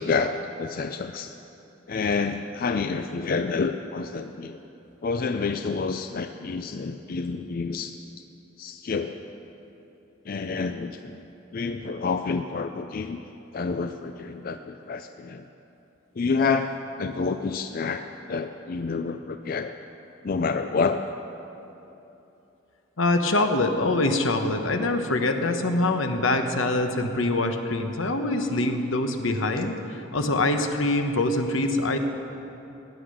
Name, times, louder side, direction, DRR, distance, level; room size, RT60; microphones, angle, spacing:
voice 1, 0.0-1.3 1.9-4.6 5.0-7.9 8.6-9.2 10.3-11.2 11.5-13.2 13.5-15.4 16.2-19.7 20.2-21.0, left 4 dB, 45° left, 8 dB, 0.4 m, -28 dB
voice 2, 23.0-32.0, left 2 dB, 80° left, 6 dB, 1.1 m, -24 dB
16.0 x 10.5 x 6.4 m, 2.9 s
head